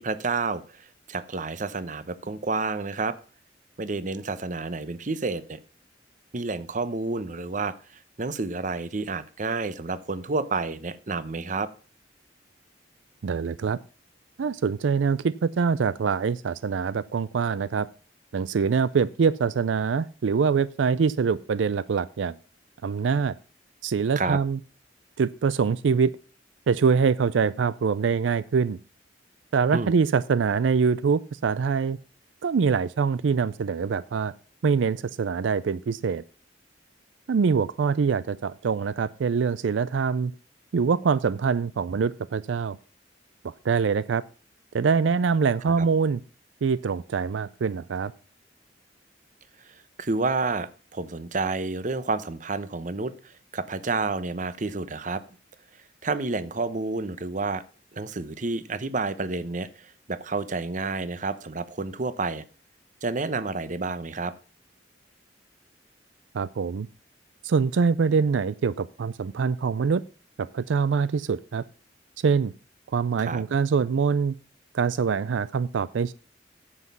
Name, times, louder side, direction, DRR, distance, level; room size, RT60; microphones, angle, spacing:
voice 1, 0.0-3.2 3.8-5.6 6.3-11.7 24.2-24.4 29.7-29.9 45.7-45.9 49.6-55.2 56.0-57.6 57.9-62.4 63.0-64.3 73.2-73.4, right 3 dB, 45° right, 14 dB, 0.8 m, -30 dB
voice 2, 13.2-13.8 14.4-17.9 18.3-22.4 22.8-23.3 23.8-24.6 25.2-26.1 26.7-28.8 29.5-32.0 32.4-34.3 34.6-36.2 37.3-40.3 40.7-42.8 43.4-44.2 44.7-46.2 46.6-48.1 66.3-66.9 67.4-70.0 70.4-71.6 72.2-72.5 72.9-74.3 74.7-76.1, right 5 dB, 85° right, 17 dB, 0.4 m, -24 dB
9.8 x 7.3 x 5.5 m, 0.35 s
head